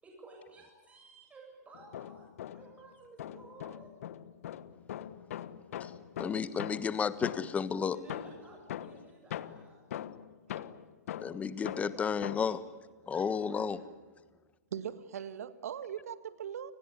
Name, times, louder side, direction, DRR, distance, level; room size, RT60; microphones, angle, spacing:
voice 1, 0.0-3.9 7.9-9.8 11.6-12.1 12.4-12.5 13.1-13.8, right 2 dB, 15° right, 0 dB, 7.3 m, -54 dB
sound 1, 1.7-2.8 3.2-7.7 8.1-12.6, left 11 dB, 60° left, 1.4 m, -42 dB
voice 2, 6.2-8.0 11.2-12.6 13.1-13.8, left 6 dB, 15° left, 15 dB, 1.4 m, -32 dB
voice 3, 14.7-16.7, right 9 dB, 65° right, 14 dB, 1.9 m, -40 dB
30.0 x 20.0 x 9.8 m, 1.4 s
figure-of-eight pair, 110°, 9 cm